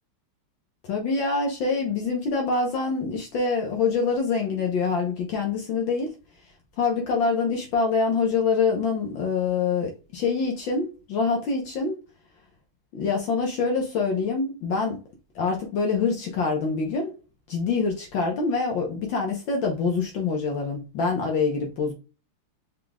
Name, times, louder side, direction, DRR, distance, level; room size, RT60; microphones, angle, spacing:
voice 1, 0.9-6.1 6.8-12.0 12.9-15.0 15.4-17.1 17.5-21.9, left 4 dB, 65° left, 1.6 m, -25 dB
5.0 x 3.7 x 2.3 m
omnidirectional pair, 2.4 m